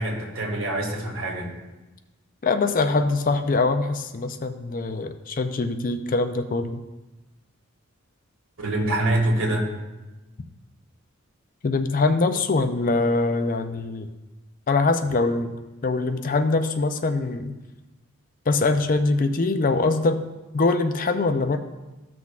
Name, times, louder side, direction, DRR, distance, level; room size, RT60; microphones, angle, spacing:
voice 1, 0.0-1.5 8.6-9.6, right 1 dB, 75° right, -1 dB, 1.8 m, -25 dB
voice 2, 2.4-6.8 11.6-14.1 14.7-15.5 15.8-17.5 18.5-20.2 20.5-21.6, left 3 dB, 40° left, 8 dB, 0.5 m, -23 dB
14.5 x 6.1 x 2.4 m, 1.1 s
head